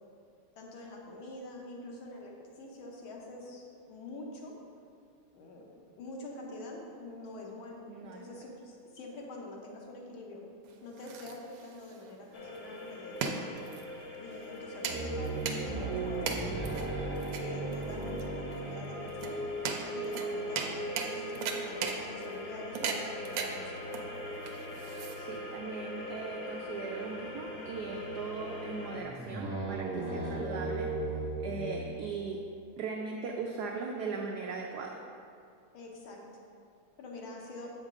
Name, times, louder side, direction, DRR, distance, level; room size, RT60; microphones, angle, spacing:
voice 1, 0.6-4.5 5.3-10.4 10.8-13.3 14.1-16.7 17.2-19.4 19.9-23.8 30.1-30.4 35.7-36.2 37.0-37.7, left 2 dB, 80° left, -1 dB, 1.7 m, -46 dB
voice 2, 7.9-8.4 25.2-30.9 31.4-32.4 32.8-35.0, right 5 dB, 90° right, 1 dB, 0.8 m, -39 dB
sound 1, 10.6-25.6, right 6 dB, 70° right, 1.2 m, -39 dB
sound 2, 12.3-29.0, left 1 dB, 50° left, 0.9 m, -41 dB
sound 3, 14.9-19.8 27.4-28.0 28.3-28.4 29.0-32.4, right 3 dB, 30° right, 0.8 m, -37 dB
7.5 x 5.3 x 3.7 m, 2.4 s
omnidirectional pair, 2.3 m